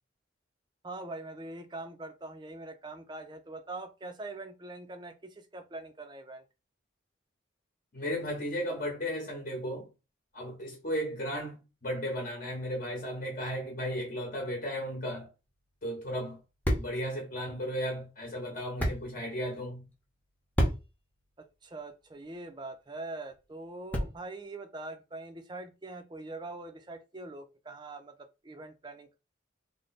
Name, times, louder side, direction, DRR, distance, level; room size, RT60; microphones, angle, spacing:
voice 1, 0.8-6.4 21.4-29.2, right 2 dB, 20° right, 0.4 m, -43 dB
voice 2, 7.9-9.9 10.3-15.3 15.8-16.4 16.8-19.9, equal, 45° left, 0.9 m, -35 dB
sound 1, 15.4-24.4, equal, 10° left, 0.7 m, -37 dB
3.2 x 2.1 x 4.0 m
head